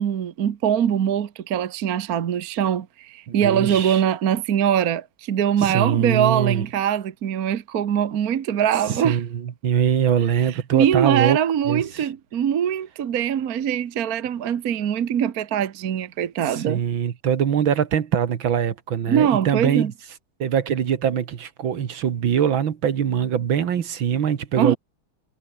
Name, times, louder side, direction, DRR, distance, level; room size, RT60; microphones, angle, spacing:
voice 1, 0.0-9.2 10.7-16.8 19.1-19.9 24.6-24.8, right 9 dB, 50° right, 1.3 m, -22 dB
voice 2, 3.3-4.0 5.6-6.6 8.9-11.4 11.7-12.1 16.5-19.9 20.4-24.8, right 8 dB, 65° right, 2.2 m, -23 dB
omnidirectional pair, 2.4 m